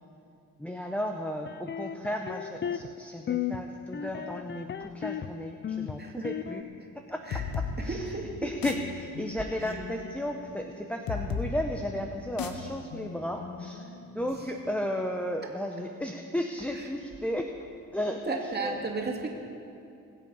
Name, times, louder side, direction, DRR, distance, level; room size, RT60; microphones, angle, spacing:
voice 1, 0.6-6.7 7.1-7.2 7.5-8.0 8.4-13.9 14.1-17.5 17.9-18.9, equal, 5° left, 3 dB, 0.8 m, -34 dB
sound 1, 1.5-2.9 3.3-3.6 3.9-5.3 5.6-6.6, left 9 dB, 35° left, 0.5 m, -34 dB
voice 2, 6.0-6.3 7.2-7.4 7.8-8.5 9.6-9.8 14.3-14.5 16.7-16.9 18.3-19.3, right 3 dB, 30° right, 0 dB, 2.4 m, -34 dB
sound 2, 7.3-14.7, left 5 dB, 85° left, 1.0 m, -37 dB
21.5 x 7.5 x 5.5 m, 2.6 s
cardioid pair, 80°, 34 cm